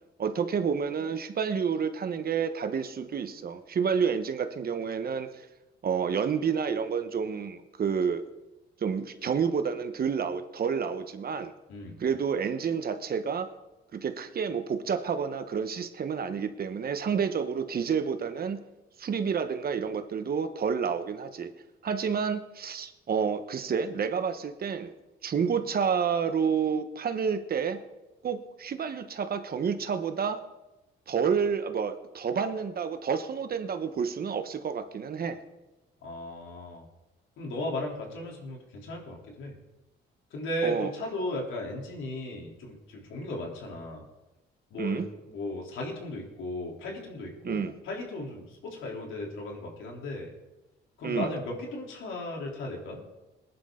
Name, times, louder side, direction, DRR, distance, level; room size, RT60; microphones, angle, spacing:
voice 1, 0.2-5.5 5.8-8.2 8.8-11.5 12.0-13.5 13.9-18.6 19.0-21.5 21.8-24.9 25.2-27.8 28.2-30.4 31.1-35.4 40.6-40.9 44.8-45.1 47.4-47.7 51.0-51.3, right 6 dB, 50° right, 9 dB, 1.2 m, -29 dB
voice 2, 36.0-36.8 37.4-39.5 40.3-44.0 44.7-50.3 51.0-53.0, left 1 dB, 80° left, -1 dB, 3.5 m, -36 dB
20.0 x 11.0 x 3.9 m, 1.0 s
cardioid pair, 90°, 20 cm